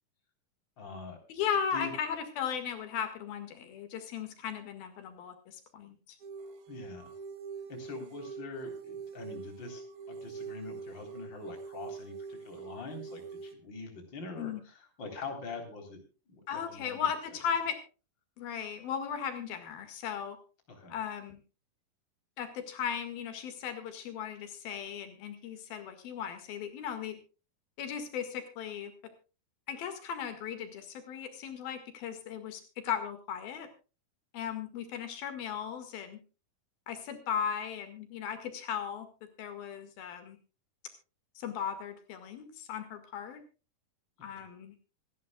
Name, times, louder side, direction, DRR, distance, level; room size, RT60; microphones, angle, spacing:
voice 1, 0.8-1.2 1.7-1.9 6.7-7.1 7.7-16.0 16.3-17.4 20.7-20.9 44.3-44.4, left 4 dB, 30° left, 3 dB, 4.2 m, -44 dB
voice 2, 1.3-6.2 14.4-14.6 16.5-17.8 18.4-20.4 20.9-21.4 22.4-27.2 27.8-28.9 29.7-33.7 34.3-36.2 36.9-39.1 39.4-40.4 41.4-43.4 44.2-44.7, left 8 dB, 85° left, 7 dB, 3.7 m, -37 dB
sound 1, 6.2-13.5, right 5 dB, 60° right, 1.5 m, -44 dB
26.5 x 11.0 x 2.3 m, 0.33 s
omnidirectional pair, 4.1 m